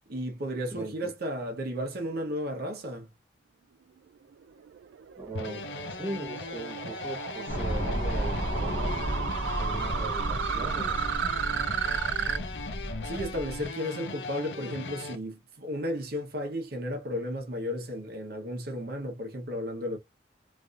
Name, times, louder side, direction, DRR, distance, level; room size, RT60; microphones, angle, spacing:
voice 1, 0.1-3.1 13.0-20.0, equal, 60° right, 0.8 m, -34 dB
voice 2, 0.7-1.1 5.2-9.0 9.6-11.0, right 2 dB, 10° right, 0.9 m, -39 dB
sound 1, 4.3-12.4, right 9 dB, 85° right, 0.3 m, -34 dB
sound 2, 5.3-15.2, left 3 dB, 85° left, 0.6 m, -39 dB
sound 3, 7.5-13.7, equal, 50° left, 0.8 m, -33 dB
3.3 x 2.5 x 2.4 m
head